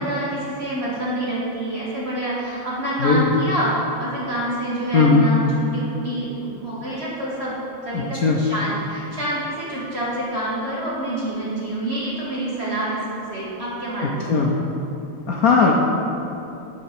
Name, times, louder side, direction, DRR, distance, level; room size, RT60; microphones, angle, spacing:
voice 1, 0.0-3.7 4.0-7.6 7.8-13.0 13.3-14.4, right 1 dB, 30° right, -8 dB, 2.3 m, -27 dB
voice 2, 3.0-3.4 4.9-5.3 7.9-8.4 14.0-14.5 15.3-15.7, left 4 dB, 90° left, -1 dB, 0.7 m, -18 dB
10.5 x 4.7 x 6.0 m, 2.9 s
omnidirectional pair, 2.4 m